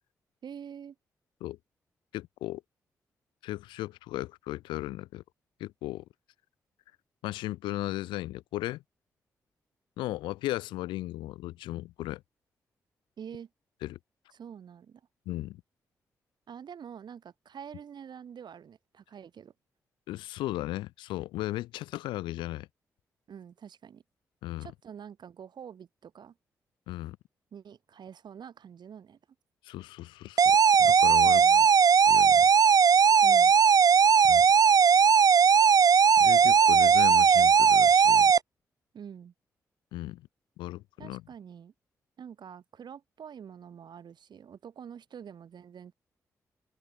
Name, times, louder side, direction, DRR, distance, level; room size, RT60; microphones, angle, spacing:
voice 1, 0.4-1.0 13.2-13.5 14.3-15.0 16.5-19.5 23.3-24.0 24.6-26.3 27.5-29.2 31.3-31.7 33.2-33.5 38.9-39.3 41.0-41.7 42.2-45.9, right 8 dB, 65° right, 7.0 m, -46 dB
voice 2, 2.1-2.6 3.4-5.2 5.6-6.0 7.2-8.8 10.0-12.2 13.8-14.0 15.3-15.6 20.1-22.7 24.4-24.7 26.9-27.2 29.6-31.4 32.1-32.5 34.3-34.5 36.2-38.3 39.9-40.2 40.6-41.2, left 16 dB, 85° left, 0.9 m, -36 dB
sound 1, 30.4-38.4, right 6 dB, 50° right, 0.5 m, -19 dB
hypercardioid pair, 40°, 8 cm